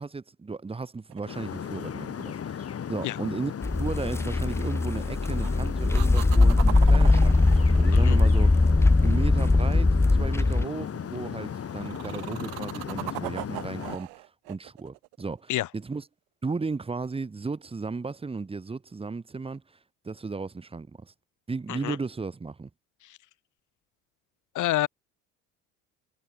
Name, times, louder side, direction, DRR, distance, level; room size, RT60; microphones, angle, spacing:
voice 1, 0.0-16.0 16.4-19.6 20.0-21.1 21.5-22.7, right 4 dB, 15° right, 1.0 m, -35 dB
sound 1, 1.1-2.3 5.0-5.5 5.9-9.2 11.4-15.8 19.5-19.6, right 34 dB, 80° right, 4.3 m, -39 dB
sound 2, 1.2-14.0, left 8 dB, 40° left, 2.4 m, -36 dB
sound 3, 3.6-10.6, left 2 dB, 10° left, 0.4 m, -21 dB
voice 2, 24.5-24.9, left 15 dB, 55° left, 0.9 m, -28 dB
supercardioid pair, 70°, 36 cm